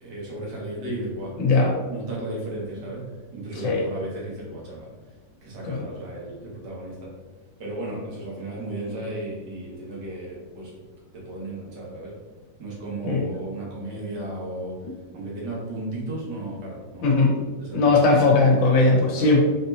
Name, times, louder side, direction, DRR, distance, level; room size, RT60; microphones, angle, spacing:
voice 1, 0.0-1.4 1.9-4.9 5.4-7.1 7.6-10.8 11.1-12.2 12.6-14.8 15.1-17.2 17.6-18.0 19.1-19.4, right 1 dB, 65° right, -4 dB, 1.9 m, -34 dB
voice 2, 1.4-1.7 3.6-3.8 5.7-5.8 13.0-13.2 17.0-17.4 17.7-19.4, left 3 dB, 80° left, 0 dB, 1.7 m, -18 dB
4.4 x 4.1 x 2.8 m, 1.3 s
omnidirectional pair, 2.0 m